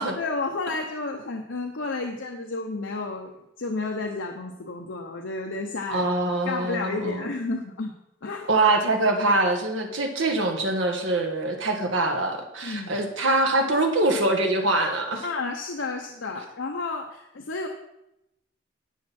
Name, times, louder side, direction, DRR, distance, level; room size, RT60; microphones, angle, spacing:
voice 1, 0.1-6.1 6.4-7.9 8.2-8.5 12.6-12.9 15.2-17.7, left 3 dB, 85° left, 2 dB, 0.9 m, -31 dB
voice 2, 5.9-7.2 8.5-15.3, right 2 dB, 85° right, 3 dB, 1.6 m, -24 dB
11.0 x 8.7 x 4.3 m, 0.86 s
head